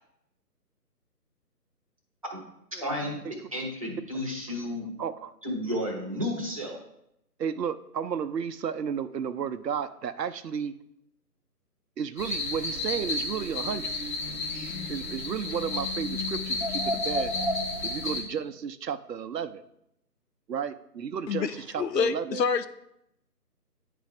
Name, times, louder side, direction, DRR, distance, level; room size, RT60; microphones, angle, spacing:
voice 1, 2.8-3.2 3.5-4.9 5.4-6.8, left 1 dB, 20° right, -1 dB, 0.7 m, -32 dB
voice 2, 5.0-5.3 7.4-10.8 12.0-13.9 14.9-17.3 17.8-19.6 20.5-21.5 21.7-22.4, right 7 dB, 80° right, 12 dB, 0.6 m, -33 dB
sound 1, 12.2-18.2, left 2 dB, 30° left, 1.3 m, -31 dB
voice 3, 21.3-22.7, left 6 dB, 80° left, 11 dB, 0.6 m, -27 dB
9.5 x 3.3 x 3.6 m, 0.79 s
figure-of-eight pair, 155°, 48 cm